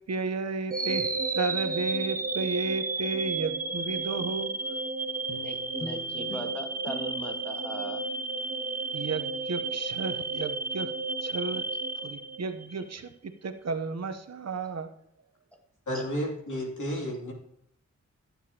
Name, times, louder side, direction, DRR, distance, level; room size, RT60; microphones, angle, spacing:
voice 1, 0.1-4.5 8.9-10.9 11.2-11.6 12.0-14.9, right 4 dB, 60° right, 8 dB, 0.8 m, -33 dB
sound 1, 0.7-12.8, right 3 dB, 30° right, 0.7 m, -32 dB
sound 2, 5.3-9.9, left 2 dB, 50° left, 1.4 m, -46 dB
voice 2, 5.4-8.0 15.9-16.0, equal, 5° left, 2 dB, 1.9 m, -40 dB
voice 3, 15.9-17.3, equal, 80° left, -2 dB, 2.8 m, -32 dB
15.0 x 7.1 x 2.9 m, 0.71 s
cardioid pair, 55°, 30 cm